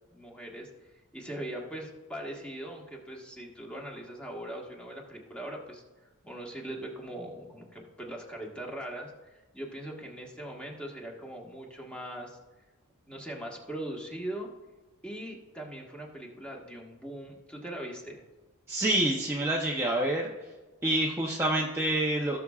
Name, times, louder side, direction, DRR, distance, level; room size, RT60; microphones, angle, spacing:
voice 1, 0.1-12.4 13.1-14.5 15.0-18.2, right 1 dB, 5° left, -1 dB, 1.5 m, -41 dB
voice 2, 18.7-20.3 20.8-22.4, right 1 dB, 10° right, -3 dB, 0.8 m, -27 dB
17.5 x 6.9 x 2.4 m, 1.2 s
head